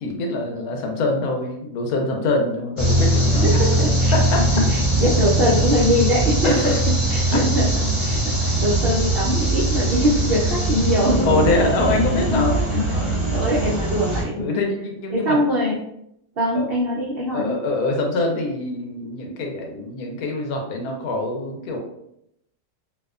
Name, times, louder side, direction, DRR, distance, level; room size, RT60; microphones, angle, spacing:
voice 1, 0.0-3.9 4.1-4.5 6.4-6.8 11.2-13.1 14.4-15.4 16.5-16.6 17.3-21.8, left 2 dB, 75° left, 2 dB, 1.0 m, -24 dB
sound 1, 2.8-14.2, right 1 dB, 30° left, 0.5 m, -21 dB
voice 2, 3.4-6.8 7.1-7.7 8.0-11.3 11.8-12.4 12.7-14.6 15.1-15.8 16.4-17.6, equal, 90° right, -6 dB, 0.5 m, -23 dB
2.7 x 2.1 x 2.3 m, 0.77 s
omnidirectional pair, 1.7 m